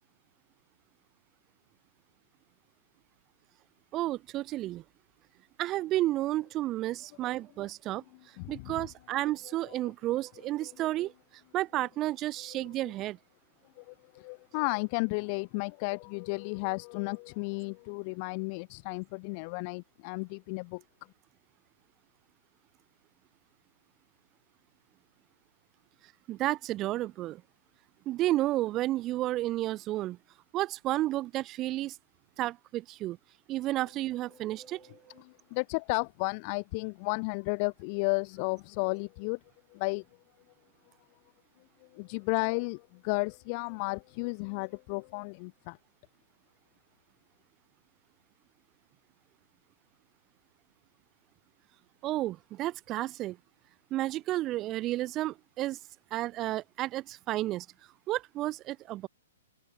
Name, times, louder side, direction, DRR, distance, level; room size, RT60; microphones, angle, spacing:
voice 1, 3.9-4.8 5.6-8.0 8.5-11.1 11.5-13.2 26.3-27.4 28.0-30.2 30.5-32.0 32.4-33.2 33.5-35.0 52.0-53.4 53.9-55.8 56.1-57.7 58.1-59.1, right 15 dB, 30° right, 1.4 m, -31 dB
voice 2, 8.4-8.8 9.7-9.8 12.5-12.9 13.8-20.8 35.2-39.4 39.7-40.0 41.9-45.8, left 34 dB, 40° left, 1.3 m, -33 dB
open air
hypercardioid pair, 125°, 0 cm